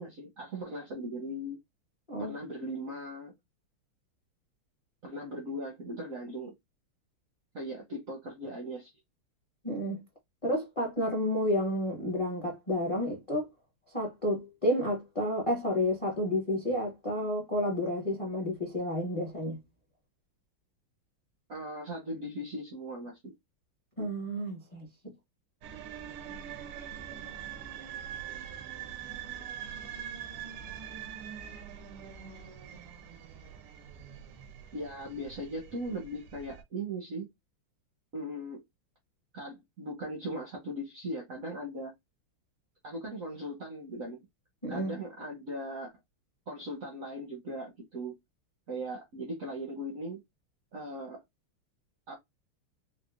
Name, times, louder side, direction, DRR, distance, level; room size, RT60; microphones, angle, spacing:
voice 1, 0.0-1.6 2.2-3.3 5.0-6.5 7.5-8.9 21.5-23.3 34.7-37.3 38.1-38.6 39.3-41.9 42.8-44.2 44.7-45.9 46.5-48.2 48.7-50.2 50.7-51.2 52.1-52.2, equal, 65° right, 0.8 m, -38 dB
voice 2, 9.6-10.0 10.4-13.5 13.9-19.6 24.0-25.1 44.6-44.9, left 1 dB, 40° left, 0.4 m, -31 dB
sound 1, 25.6-36.6, right 9 dB, 85° right, 1.6 m, -43 dB
4.7 x 2.1 x 2.4 m
omnidirectional pair, 2.4 m